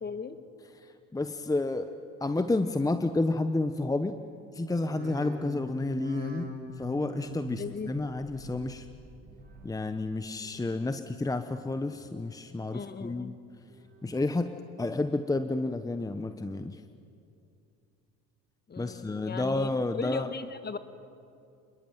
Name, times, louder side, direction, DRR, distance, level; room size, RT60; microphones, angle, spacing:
voice 1, 0.0-0.4 7.6-7.9 12.7-13.3 18.7-19.7 20.0-20.8, left 5 dB, 30° left, 11 dB, 1.6 m, -37 dB
voice 2, 0.7-1.9 2.2-4.2 4.5-8.9 9.6-13.4 14.0-16.8 18.8-20.3, left 2 dB, 10° left, 9 dB, 1.0 m, -30 dB
sound 1, 4.7-10.0 10.3-10.9 11.4-12.1 12.5-13.2 13.6-14.3 14.7-15.3 15.8-15.9, right 1 dB, 30° right, 4.5 m, -46 dB
27.0 x 21.0 x 9.5 m, 2.6 s
supercardioid pair, 90°, 32 cm